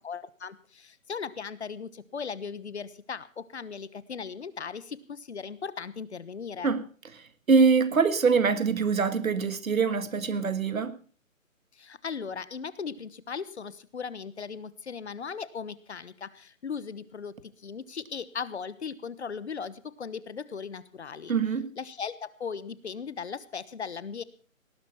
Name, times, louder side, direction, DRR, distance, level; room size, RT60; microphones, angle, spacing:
voice 1, 0.0-6.8 11.7-21.3 21.8-24.2, left 6 dB, 55° left, 1.2 m, -38 dB
voice 2, 7.5-11.0 21.3-21.7, right 5 dB, 80° right, 1.6 m, -24 dB
18.5 x 11.0 x 5.6 m
hypercardioid pair, 165°, 41 cm